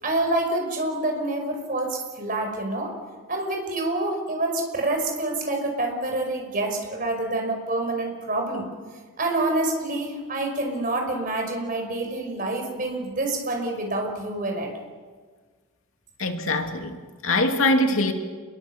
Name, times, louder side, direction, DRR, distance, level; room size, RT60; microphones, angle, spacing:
voice 1, 0.0-2.9 3.3-8.7 9.2-14.7, right 2 dB, 40° right, 3 dB, 5.4 m, -27 dB
voice 2, 16.2-18.1, left 2 dB, 70° left, 4 dB, 2.5 m, -23 dB
28.0 x 22.0 x 7.3 m, 1.5 s
head